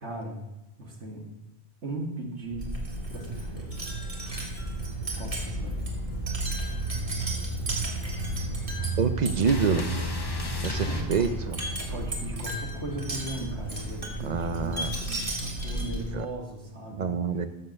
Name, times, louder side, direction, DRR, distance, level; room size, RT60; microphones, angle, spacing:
voice 1, 0.0-0.4 0.8-1.3 1.8-2.8 3.1-3.7 5.2-5.9 10.8-11.3 11.9-17.5, right 1 dB, 85° right, 0 dB, 2.2 m, -38 dB
Wind chime, 2.5-16.2, right 2 dB, 30° right, 2.1 m, -33 dB
voice 2, 9.0-9.8 10.6-11.6 14.2-14.9 16.2-16.3 17.0-17.5, right 6 dB, 50° right, 10 dB, 0.6 m, -26 dB
sound 1, 9.4-11.9 13.3-14.6, left 2 dB, 25° left, 0.8 m, -35 dB
13.0 x 4.4 x 6.4 m, 0.91 s
omnidirectional pair, 1.1 m